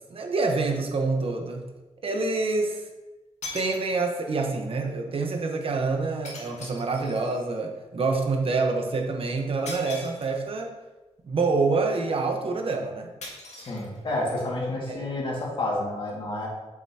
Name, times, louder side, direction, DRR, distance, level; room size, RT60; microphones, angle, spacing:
voice 1, 0.0-1.7 2.0-2.8 3.5-10.7 11.2-13.1 14.9-15.0, right 3 dB, 55° right, 3 dB, 1.1 m, -27 dB
sound 1, 0.7-0.8 2.8-2.9 3.4-4.3 6.2-7.5 9.6-10.6 13.2-14.3, left 3 dB, 85° left, 1.7 m, -41 dB
voice 2, 13.5-16.5, left 2 dB, 50° left, -3 dB, 2.2 m, -30 dB
8.1 x 7.3 x 2.9 m, 1.1 s
wide cardioid pair, 140°, 11 cm